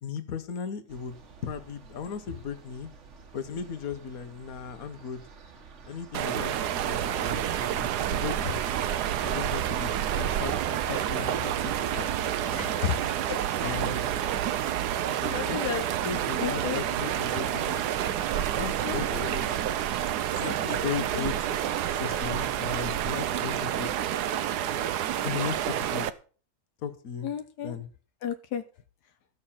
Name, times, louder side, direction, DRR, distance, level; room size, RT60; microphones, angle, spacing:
voice 1, 0.0-2.9 3.3-5.2 5.8-8.6 9.2-11.5 11.9-12.9 13.6-14.2 15.0-15.6 16.0-17.9 18.4-19.6 20.3-21.5 21.9-23.9 25.2-26.1 26.8-27.3 27.6-27.9, left 6 dB, 65° left, 10 dB, 1.6 m, -37 dB
sound 1, 0.9-14.9, right 6 dB, 50° right, 1.4 m, -45 dB
sound 2, 6.1-26.1, right 11 dB, 80° right, 1.3 m, -29 dB
voice 2, 12.6-13.4 13.6-13.7 15.3-15.9 16.4-16.8 18.8-19.3 20.7-21.2 27.2-27.8 28.2-28.6, left 9 dB, 85° left, 9 dB, 1.4 m, -33 dB
13.5 x 6.7 x 5.7 m, 0.39 s
omnidirectional pair, 1.7 m